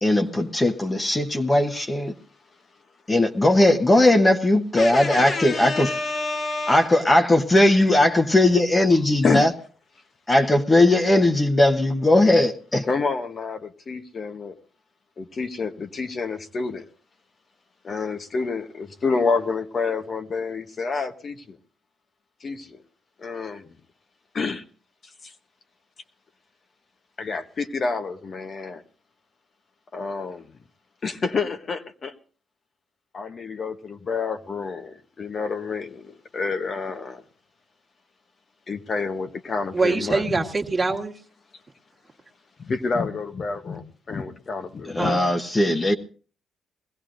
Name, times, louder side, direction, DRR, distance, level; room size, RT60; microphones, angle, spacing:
voice 1, 0.0-2.1 3.1-5.9 6.7-9.5 10.3-12.8 44.9-45.9, left 1 dB, 20° left, 1.0 m, -19 dB
voice 2, 4.8-6.9 9.2-9.4 12.9-14.6 15.2-16.8 17.8-21.6 22.4-22.8 23.2-23.7 24.3-24.6 25.2-25.3 27.2-28.8 29.9-30.5 31.0-32.1 33.1-37.2 38.7-40.2 42.6-45.2 45.7-45.9, left 4 dB, 45° left, 0.9 m, -28 dB
voice 3, 39.7-41.2 45.0-45.3, right 3 dB, 25° right, 1.5 m, -24 dB
21.0 x 15.5 x 2.5 m
cardioid pair, 90°, 0 cm